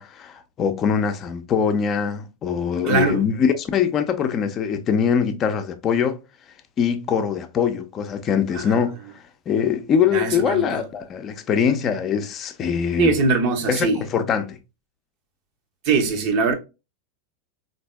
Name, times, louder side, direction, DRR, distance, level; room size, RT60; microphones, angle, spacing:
voice 1, 0.0-6.2 6.8-9.0 9.5-13.1 13.7-14.6, left 7 dB, 35° left, 0.5 m, -23 dB
voice 2, 2.8-3.2 8.5-8.6 10.1-10.8 13.0-14.0 15.9-16.5, right 4 dB, 55° right, 0.8 m, -21 dB
3.4 x 2.6 x 2.2 m
hypercardioid pair, 105°, 0 cm